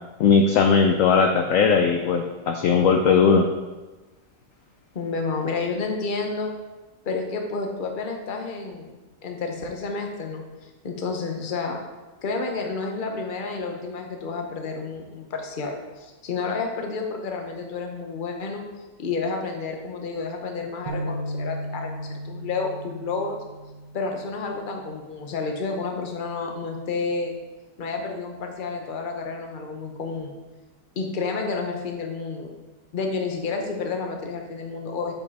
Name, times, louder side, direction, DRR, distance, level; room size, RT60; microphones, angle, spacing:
voice 1, 0.2-3.5, left 5 dB, 70° left, 3 dB, 0.8 m, -18 dB
voice 2, 4.9-6.5 7.0-8.9 9.2-11.8 12.2-18.6 19.0-23.4 23.9-27.3 27.8-30.3 30.9-32.5 32.9-35.1, left 4 dB, 40° left, 2 dB, 0.8 m, -30 dB
sound 1, 20.9-25.1 25.6-25.8 26.7-27.1, right 1 dB, 90° right, 1.5 m, -36 dB
7.4 x 5.4 x 4.1 m, 1.2 s
omnidirectional pair, 1.9 m